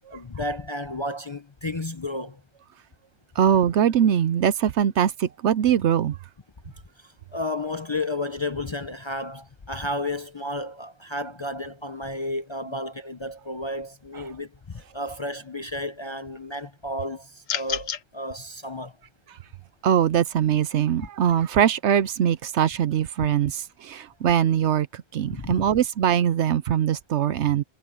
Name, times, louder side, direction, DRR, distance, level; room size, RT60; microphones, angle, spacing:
voice 1, 0.1-2.4 7.0-19.0 25.3-25.5, left 1 dB, 30° left, 0.6 m, -32 dB
voice 2, 3.4-6.2 14.1-14.2 19.8-27.6, right 9 dB, 65° right, 0.9 m, -22 dB
sound 1, 17.5-18.0, left 9 dB, 80° left, 1.3 m, -29 dB
omnidirectional pair, 1.3 m